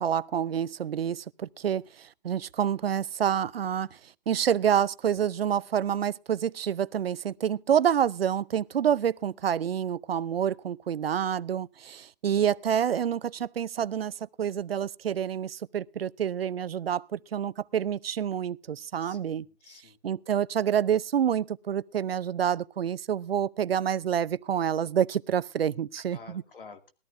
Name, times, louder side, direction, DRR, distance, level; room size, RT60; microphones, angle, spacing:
voice 1, 0.0-4.0 4.3-14.1 14.4-19.4 20.0-26.4, right 9 dB, 80° right, 0.7 m, -28 dB
voice 2, 19.0-20.0 26.1-26.9, left 4 dB, 65° left, 2.5 m, -49 dB
20.0 x 13.5 x 2.7 m
hypercardioid pair, 175°, 29 cm